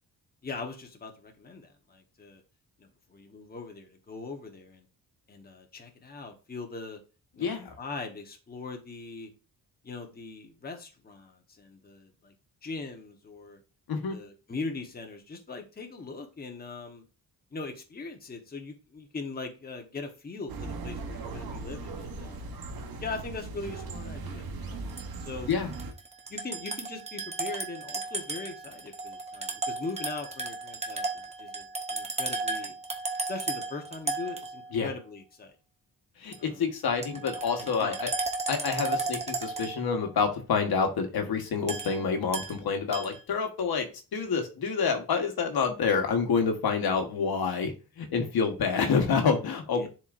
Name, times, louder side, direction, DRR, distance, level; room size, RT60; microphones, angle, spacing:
voice 1, 0.4-2.4 2.8-4.9 5.3-7.0 7.4-9.3 9.8-12.3 12.6-13.6 14.1-17.0 17.5-22.5 23.0-25.5 26.3-32.7 33.3-35.6 36.4-36.7 37.1-37.2 37.6-38.0 49.7-49.9, left 3 dB, 25° left, 3 dB, 1.1 m, -40 dB
voice 2, 7.4-7.7 13.9-14.2 25.5-25.7 34.7-34.9 36.2-38.1 38.5-49.9, left 5 dB, 75° left, 5 dB, 1.3 m, -28 dB
sound 1, 20.5-25.9, right 3 dB, 70° right, 1.1 m, -38 dB
sound 2, 24.9-25.1 25.5-34.9 36.3-36.4 36.8-40.1 41.7-42.6 42.9-43.2, right 3 dB, 15° right, 0.8 m, -35 dB
10.5 x 4.3 x 2.5 m, 0.33 s
wide cardioid pair, 160°, 37 cm